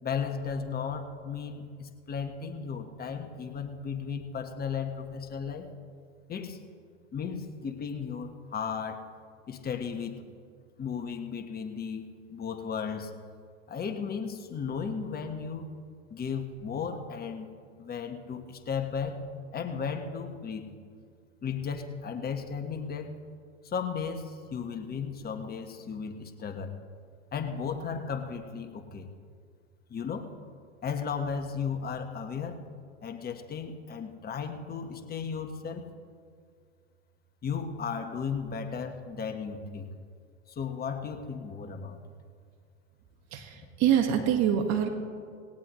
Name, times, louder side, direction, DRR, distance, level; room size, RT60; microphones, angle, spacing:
voice 1, 0.0-5.7 6.3-6.6 7.1-9.1 9.5-10.2 10.8-13.1 13.7-15.7 16.1-17.5 17.8-19.2 19.5-20.7 21.4-23.1 23.6-26.7 27.3-29.1 29.9-30.3 30.8-32.6 33.0-35.8 37.4-39.9 40.5-42.0 43.6-43.7, left 6 dB, 25° left, 5 dB, 1.5 m, -35 dB
voice 2, 43.3-44.9, right 9 dB, 45° right, 5 dB, 1.8 m, -25 dB
18.5 x 18.0 x 3.2 m, 2.2 s
hypercardioid pair, 105°, 37 cm